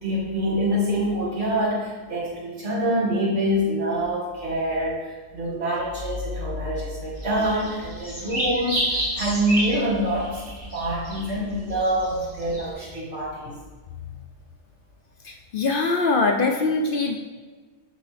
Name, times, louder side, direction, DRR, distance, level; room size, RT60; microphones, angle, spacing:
voice 1, 0.0-13.6, equal, 75° right, -6 dB, 2.3 m, -26 dB
sound 1, 7.1-12.7, equal, 45° right, 2.6 m, -31 dB
voice 2, 15.2-17.2, left 3 dB, 55° left, 2 dB, 0.7 m, -22 dB
6.5 x 6.3 x 3.3 m, 1.4 s
omnidirectional pair, 1.2 m